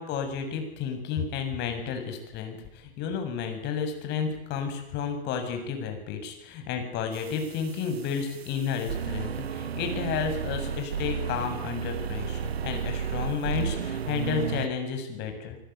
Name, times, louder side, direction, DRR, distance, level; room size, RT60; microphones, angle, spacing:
voice 1, 0.0-15.6, left 6 dB, 35° left, 6 dB, 7.4 m, -32 dB
sound 1, 7.1-14.7, right 7 dB, 75° right, 1.2 m, -33 dB
25.5 x 24.5 x 9.5 m, 0.82 s
hypercardioid pair, 115°, 31 cm